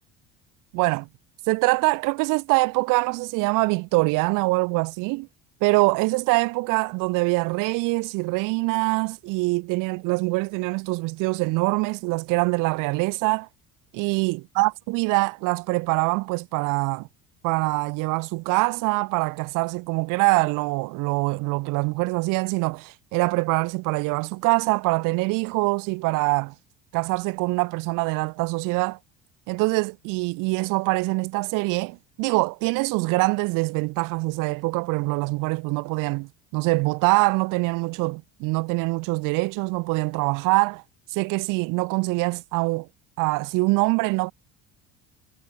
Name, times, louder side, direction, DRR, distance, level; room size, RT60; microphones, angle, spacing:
voice 1, 0.7-1.1 1.5-5.3 5.6-13.5 13.9-17.1 17.4-26.5 26.9-29.0 29.5-40.8 41.1-42.9 43.2-44.3, right 26 dB, 70° right, 2.2 m, -24 dB
supercardioid pair, 90°, 33 cm